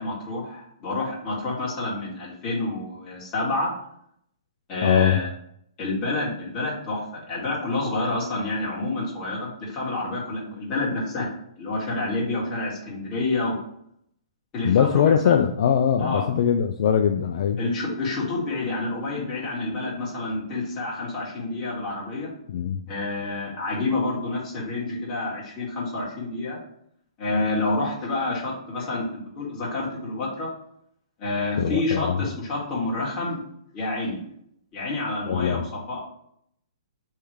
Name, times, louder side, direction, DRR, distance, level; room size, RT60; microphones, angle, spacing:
voice 1, 0.0-3.7 4.7-5.3 5.8-11.3 11.6-13.6 14.5-15.3 16.0-16.2 17.6-22.3 22.9-26.6 27.2-30.5 31.2-33.4 33.7-34.2 34.7-35.6 35.9-36.0, left 2 dB, 25° left, -6 dB, 1.9 m, -28 dB
voice 2, 4.8-5.2 14.6-17.6 22.5-22.8 31.6-32.2 35.3-35.7, left 8 dB, 60° left, 6 dB, 0.3 m, -21 dB
3.5 x 3.2 x 4.6 m, 0.71 s
hypercardioid pair, 140°, 3 cm